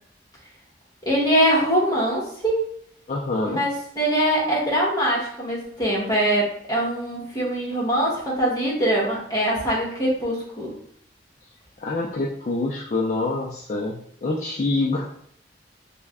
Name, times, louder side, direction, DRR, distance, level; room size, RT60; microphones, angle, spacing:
voice 1, 1.0-2.6 3.4-10.7, right 1 dB, 20° left, -4 dB, 1.0 m, -23 dB
voice 2, 3.1-3.6 11.8-15.1, left 2 dB, 45° left, -3 dB, 0.4 m, -26 dB
3.2 x 2.1 x 3.5 m, 0.65 s
head